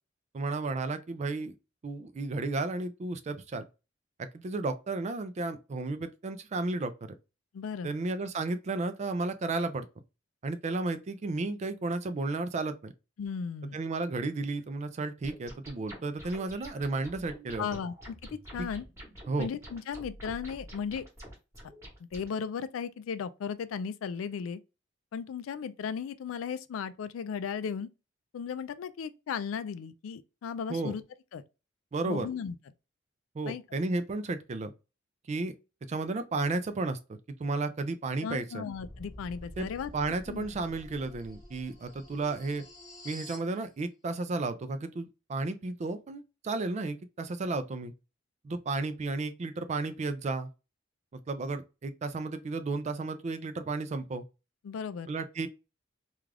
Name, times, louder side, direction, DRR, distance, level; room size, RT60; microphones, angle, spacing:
voice 1, 0.3-1.6 1.8-3.6 4.2-7.1 7.8-9.9 10.4-12.9 13.7-17.7 18.6-18.7 19.3-19.5 30.7-30.9 31.9-32.3 33.3-34.7 35.3-35.5 35.9-38.7 39.6-39.7 39.9-42.6 43.0-47.9 48.4-50.5 51.1-54.2 55.1-55.5, right 3 dB, 35° right, 0.3 m, -33 dB
voice 2, 7.5-7.9 13.2-13.8 17.6-18.9 19.4-21.0 22.0-24.6 25.1-27.9 28.3-31.0 31.3-31.4 32.1-32.6 33.4-33.6 38.2-39.9 40.3-40.5 54.6-55.1, left 6 dB, 80° left, 0.3 m, -36 dB
sound 1, 15.2-22.3, equal, 15° right, 1.1 m, -48 dB
sound 2, 38.7-43.5, left 1 dB, 20° left, 0.9 m, -48 dB
2.4 x 2.3 x 3.2 m
head